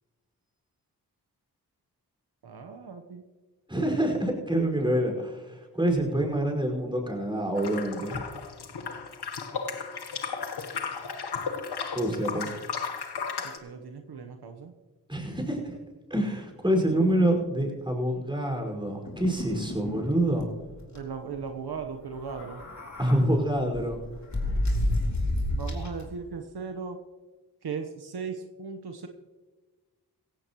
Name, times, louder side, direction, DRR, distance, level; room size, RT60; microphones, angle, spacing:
voice 1, 2.4-3.2 12.4-12.5 13.4-14.7 20.9-22.6 25.5-27.0 27.6-29.1, right 5 dB, 70° right, 5 dB, 1.2 m, -37 dB
voice 2, 3.7-8.2 11.9-12.5 15.1-15.8 16.1-20.5 23.0-24.0, right 1 dB, 10° right, 1 dB, 5.3 m, -26 dB
sound 1, 7.6-13.6, left 5 dB, 75° left, 1.3 m, -34 dB
sound 2, 19.1-20.1 20.4-20.5 20.8-21.0 22.2-23.2 23.7-26.0, left 1 dB, 45° left, 3.2 m, -30 dB
16.5 x 16.0 x 3.1 m, 1.2 s
cardioid pair, 40°, 40 cm